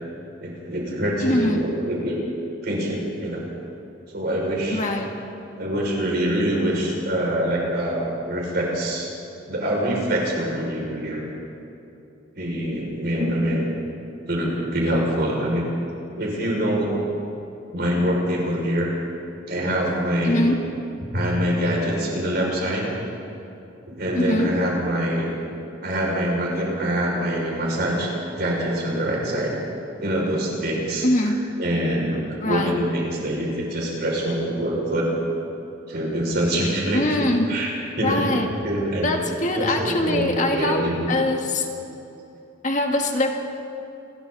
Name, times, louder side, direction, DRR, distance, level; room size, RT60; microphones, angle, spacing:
voice 1, 0.4-2.2 2.6-3.5 4.1-4.8 5.6-9.1 9.5-11.2 12.3-13.7 14.3-15.7 16.2-17.0 17.7-18.9 19.5-20.5 21.1-22.9 23.9-25.3 25.8-29.5 30.0-35.1 35.9-37.7 38.0-38.4 38.6-39.1 39.5-41.1, equal, 55° right, -3 dB, 6.1 m, -25 dB
voice 2, 1.2-1.6 4.7-5.1 20.2-20.6 24.1-24.5 31.0-31.4 32.4-32.7 36.9-37.5 38.0-38.5 39.0-41.7 42.6-43.4, left 1 dB, 40° left, 2 dB, 1.8 m, -23 dB
28.5 x 22.0 x 4.1 m, 2.9 s
head